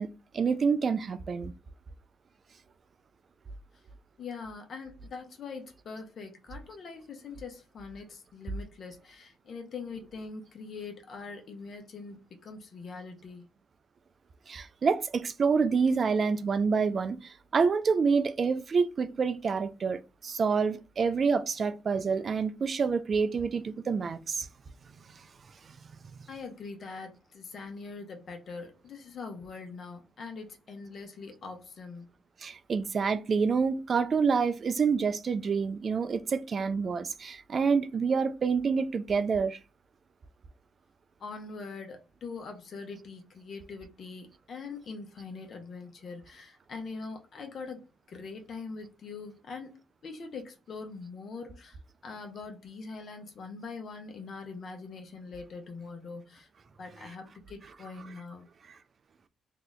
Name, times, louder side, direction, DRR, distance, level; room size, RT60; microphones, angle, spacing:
voice 1, 0.0-1.5 14.5-24.5 32.4-39.6 56.9-57.1 57.6-58.1, right 5 dB, 45° right, 0.4 m, -28 dB
voice 2, 4.2-13.5 26.3-32.1 41.2-49.7 50.0-56.5 56.8-58.5, left 4 dB, 55° left, 0.9 m, -43 dB
2.8 x 2.4 x 4.0 m
cardioid pair, 90°, 0 cm